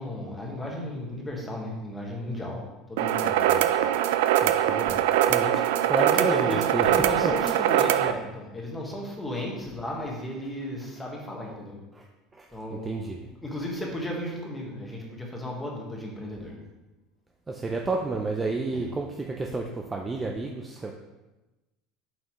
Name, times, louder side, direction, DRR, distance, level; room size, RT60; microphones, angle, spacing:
voice 1, 0.0-2.6 2.9-3.9 6.1-11.8 12.5-16.6 18.7-18.8, left 1 dB, 10° left, -1 dB, 1.3 m, -35 dB
sound 1, 3.0-8.1, right 11 dB, 90° right, 0.3 m, -23 dB
voice 2, 4.4-5.0 5.3-5.6 5.9-6.9 7.2-7.3 12.0-12.1 12.4-12.5 12.7-13.2 17.5-20.9, right 3 dB, 15° right, 2 dB, 0.4 m, -30 dB
7.5 x 5.6 x 3.0 m, 1.1 s
cardioid pair, 160°, 0 cm